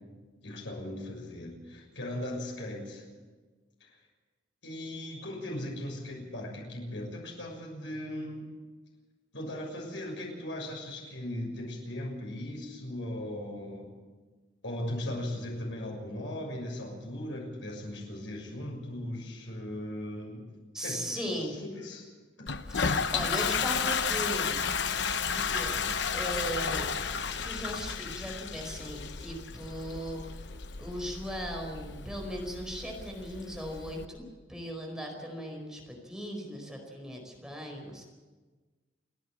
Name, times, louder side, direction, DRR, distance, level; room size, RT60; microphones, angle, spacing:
voice 1, 0.4-3.0 3.8-3.9 4.6-8.5 9.3-13.9 14.6-20.5 20.8-22.1, left 1 dB, 85° left, 0 dB, 6.7 m, -38 dB
voice 2, 20.7-21.6 22.7-24.6 25.3-26.9 27.4-30.4 30.8-34.2 34.5-38.0, equal, 5° right, 1 dB, 4.8 m, -38 dB
Toilet flush, 22.5-34.0, left 6 dB, 70° left, 0.9 m, -33 dB
29.5 x 10.0 x 8.9 m, 1.3 s
head